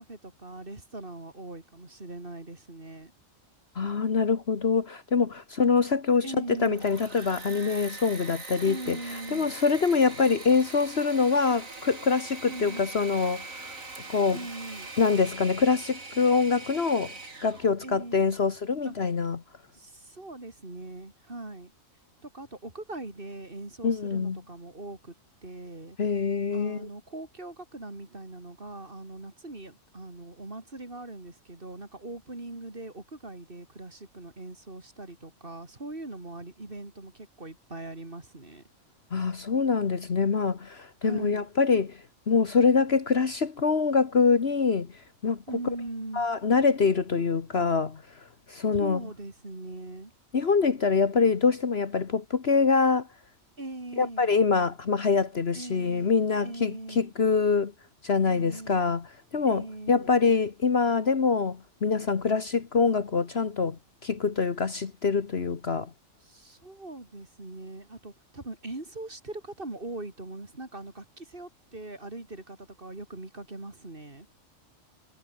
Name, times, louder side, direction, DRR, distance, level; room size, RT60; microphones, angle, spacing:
voice 1, 0.0-3.1 6.2-6.8 8.6-9.5 12.5-12.9 14.3-14.9 17.8-18.4 18.8-19.0 19.7-21.7 22.2-25.1 25.4-26.0 26.5-38.6 41.0-41.5 45.5-46.3 48.7-50.1 53.6-54.3 55.5-57.1 58.2-58.9 59.5-60.1 66.2-74.3, right 2 dB, 40° right, 4.0 m, -41 dB
voice 2, 3.7-13.7 14.1-14.4 15.0-17.1 17.4-19.4 23.8-24.4 26.0-26.9 39.1-44.9 45.2-45.4 46.1-48.0 48.5-49.0 50.3-53.1 54.0-57.7 58.0-59.1 59.3-65.9, left 5 dB, 50° left, 1.6 m, -25 dB
Engine / Mechanisms, 6.5-17.7, right 3 dB, 80° right, 4.2 m, -42 dB
omnidirectional pair, 1.4 m